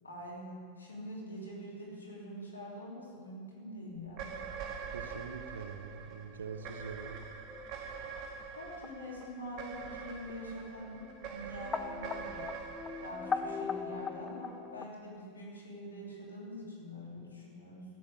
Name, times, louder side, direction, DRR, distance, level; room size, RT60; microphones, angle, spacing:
voice 1, 0.0-4.3 8.5-11.0 11.2-12.5 13.0-17.8, equal, 90° left, -4 dB, 3.0 m, -45 dB
sound 1, 4.1-14.6, right 6 dB, 50° right, 1.1 m, -45 dB
voice 2, 4.9-7.2, right 5 dB, 80° right, 8 dB, 0.7 m, -44 dB
sound 2, 6.5-14.9, left 5 dB, 25° left, 0.6 m, -41 dB
13.5 x 7.6 x 6.9 m, 2.2 s
hypercardioid pair, 90°, 0 cm